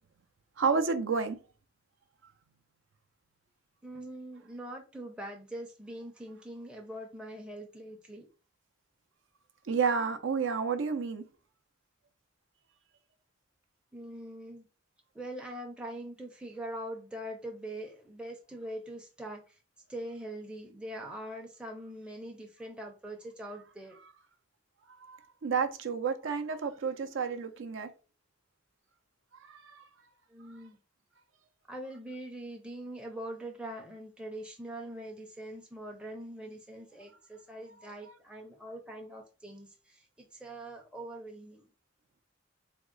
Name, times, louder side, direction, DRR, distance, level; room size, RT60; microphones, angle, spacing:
voice 1, 0.6-1.4 9.7-11.2 24.0-24.1 25.0-27.9 29.4-29.9 37.8-37.9, right 5 dB, 75° right, 0.5 m, -31 dB
voice 2, 3.8-8.3 13.9-14.7 15.1-19.5 19.9-24.0 30.3-30.8 31.7-41.7, right 1 dB, 5° right, 0.5 m, -43 dB
3.5 x 2.0 x 3.7 m
head